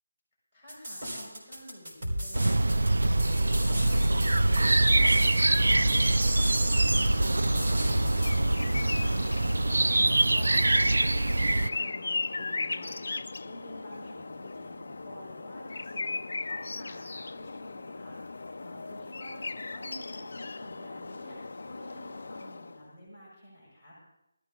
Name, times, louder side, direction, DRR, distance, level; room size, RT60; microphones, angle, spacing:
voice 1, 0.5-16.2 16.5-24.0, equal, 10° right, -9 dB, 5.7 m, -50 dB
sound 1, 0.7-8.3, equal, 45° right, 4.1 m, -34 dB
sound 2, 2.3-11.7, right 2 dB, 85° right, 0.5 m, -24 dB
sound 3, 7.0-22.9, left 3 dB, 50° left, 0.5 m, -38 dB
17.5 x 13.5 x 3.8 m, 0.84 s
figure-of-eight pair, 180°, 0 cm